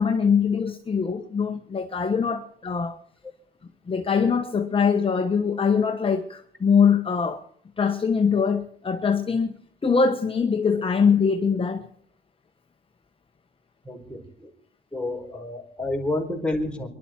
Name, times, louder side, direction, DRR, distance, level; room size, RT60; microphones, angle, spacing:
voice 1, 0.0-3.0 3.9-7.4 7.8-11.9, left 6 dB, 25° left, 1.3 m, -23 dB
voice 2, 13.8-14.5 14.9-16.9, left 2 dB, 5° left, 4.6 m, -29 dB
24.5 x 12.0 x 4.5 m
cardioid pair, 90°, 20 cm